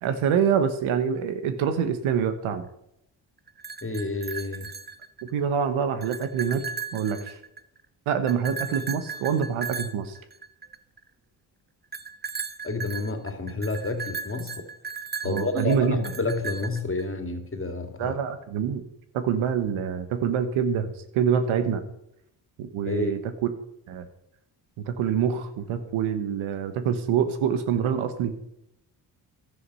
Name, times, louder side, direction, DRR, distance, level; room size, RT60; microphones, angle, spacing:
voice 1, 0.0-2.6 5.3-6.6 6.9-7.4 8.1-10.2 15.2-16.0 18.0-18.8 19.1-21.8 22.6-23.2 23.9-24.0 24.8-28.3, right 7 dB, 80° right, 9 dB, 1.3 m, -26 dB
sound 1, 3.5-5.4 5.8-7.8 8.3-11.0 11.9-17.0, right 5 dB, 20° right, 0.8 m, -36 dB
voice 2, 3.8-4.7 12.6-14.7 15.2-18.2 22.8-23.2, left 2 dB, 25° left, 6 dB, 2.6 m, -29 dB
11.5 x 9.4 x 5.6 m, 0.79 s
supercardioid pair, 55°, 48 cm